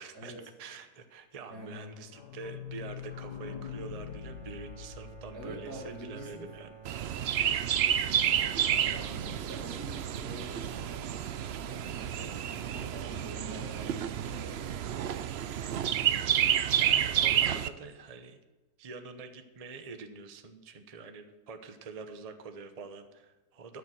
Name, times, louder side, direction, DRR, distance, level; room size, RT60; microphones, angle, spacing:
voice 1, 0.0-0.3 0.6-6.8 9.0-9.3 16.7-18.4 18.8-23.8, right 4 dB, 35° right, 7 dB, 0.7 m, -45 dB
voice 2, 1.5-1.9 5.3-6.5 8.5-11.2 11.7-12.4 12.7-14.6, equal, 70° right, 0 dB, 3.0 m, -45 dB
sound 1, 1.8-7.3 7.6-7.7 7.9-8.0 8.3-8.4, left 9 dB, 80° left, 1.8 m, -44 dB
Bowed string instrument, 4.0-8.1, right 5 dB, ahead, 2.0 m, -52 dB
Chirp tweet, 6.8-17.7, right 9 dB, 90° right, 0.5 m, -30 dB
13.0 x 7.0 x 6.2 m, 1.2 s
omnidirectional pair, 1.8 m